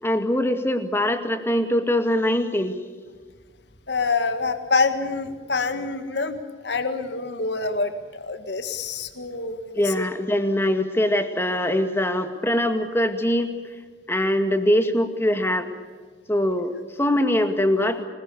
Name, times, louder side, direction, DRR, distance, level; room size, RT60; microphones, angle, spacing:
voice 1, 0.0-2.8 9.7-13.5 14.1-15.7 16.3-18.1, left 1 dB, 15° left, 7 dB, 2.0 m, -22 dB
voice 2, 3.9-10.0, left 4 dB, 65° left, 8 dB, 1.8 m, -26 dB
26.5 x 20.5 x 6.9 m, 1.5 s
head